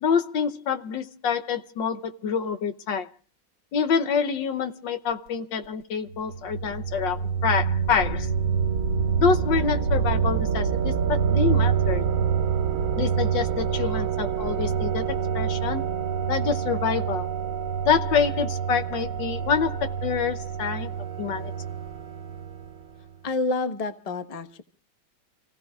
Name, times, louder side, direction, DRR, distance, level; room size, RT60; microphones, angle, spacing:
voice 1, 0.0-3.1 3.7-8.3 9.2-12.1 13.0-15.8 16.3-17.3 17.9-20.9 21.2-21.5, left 6 dB, 65° left, 1.5 m, -26 dB
sound 1, 6.1-22.8, right 7 dB, 80° right, 3.1 m, -26 dB
voice 2, 23.2-24.6, left 3 dB, 25° left, 1.0 m, -28 dB
29.5 x 16.5 x 2.4 m
omnidirectional pair, 2.2 m